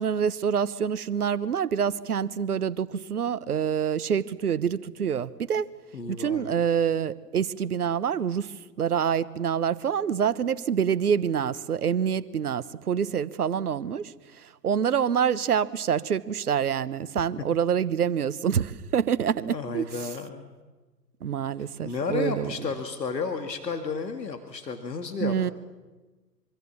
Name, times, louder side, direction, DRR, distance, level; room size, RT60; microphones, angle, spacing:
voice 1, 0.0-5.7 6.2-20.1 21.2-22.5 25.2-25.5, right 8 dB, 65° right, 16 dB, 1.2 m, -26 dB
voice 2, 5.9-6.5 19.5-20.5 21.8-25.5, left 4 dB, 75° left, 7 dB, 2.3 m, -32 dB
24.5 x 24.5 x 7.3 m, 1.2 s
figure-of-eight pair, 125°, 50 cm